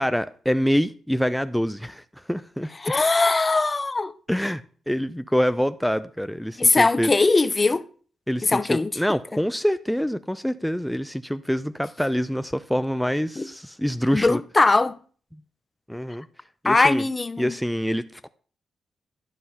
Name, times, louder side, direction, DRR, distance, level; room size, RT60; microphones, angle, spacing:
voice 1, 0.0-2.7 4.3-7.1 8.3-14.4 15.9-16.3 16.6-17.0 17.4-18.3, equal, ahead, 0.5 m, -25 dB
voice 2, 2.8-4.1 6.6-7.8 8.4-8.9 13.4-13.5 14.1-15.0 16.6-17.5, left 3 dB, 30° left, 0.8 m, -20 dB
11.5 x 5.6 x 5.6 m
supercardioid pair, 50°, 0 cm